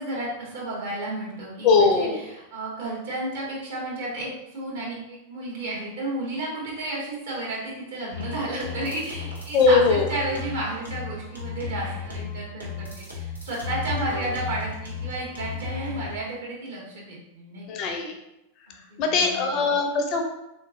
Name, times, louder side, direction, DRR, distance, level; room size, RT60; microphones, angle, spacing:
voice 1, 0.0-17.7 18.9-19.6, right 2 dB, 60° right, -4 dB, 1.2 m, -32 dB
voice 2, 1.6-2.2 9.5-10.1 17.7-18.1 19.0-20.2, left 4 dB, 40° left, 4 dB, 0.5 m, -20 dB
sound 1, 8.1-16.1, left 5 dB, 85° right, 0.9 m, -34 dB
3.6 x 2.9 x 2.4 m, 0.89 s
figure-of-eight pair, 90°, 0 cm